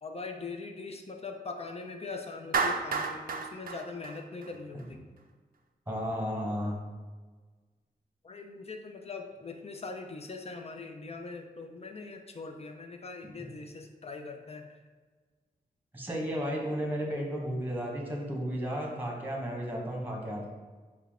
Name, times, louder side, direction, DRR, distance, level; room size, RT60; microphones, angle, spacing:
voice 1, 0.0-5.0 8.2-14.7, left 3 dB, 40° left, 4 dB, 0.5 m, -41 dB
Clapping, 2.5-4.8, right 5 dB, 60° right, 0.4 m, -31 dB
voice 2, 5.9-6.8 13.4-13.5 15.9-20.4, equal, 10° right, -1 dB, 1.2 m, -33 dB
4.5 x 2.3 x 3.6 m, 1.4 s
cardioid pair, 50°, 17 cm